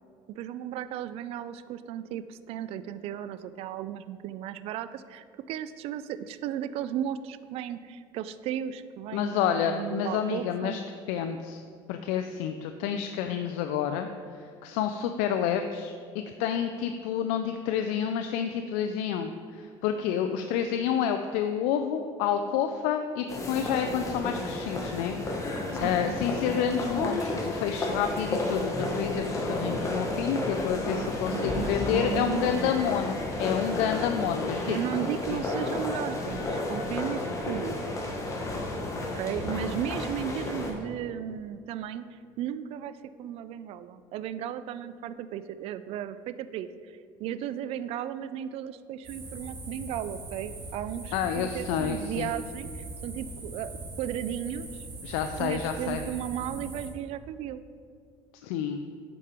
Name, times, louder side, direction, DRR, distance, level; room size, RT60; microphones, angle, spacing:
voice 1, 0.4-10.8 20.4-20.5 25.7-26.1 30.6-32.5 34.6-37.8 39.1-54.9 55.4-57.6, right 10 dB, 55° right, 13 dB, 0.4 m, -35 dB
voice 2, 9.1-10.8 11.1-11.6 11.9-14.1 14.4-34.8 35.3-35.4 51.1-52.3 55.0-56.0 58.4-58.8, left 8 dB, 85° left, 6 dB, 0.4 m, -29 dB
sound 1, 23.3-40.7, left 2 dB, 25° left, 1.3 m, -32 dB
sound 2, 49.0-56.9, right 2 dB, 40° right, 1.8 m, -41 dB
8.3 x 5.1 x 4.3 m, 2.3 s
cardioid pair, 120°, 12 cm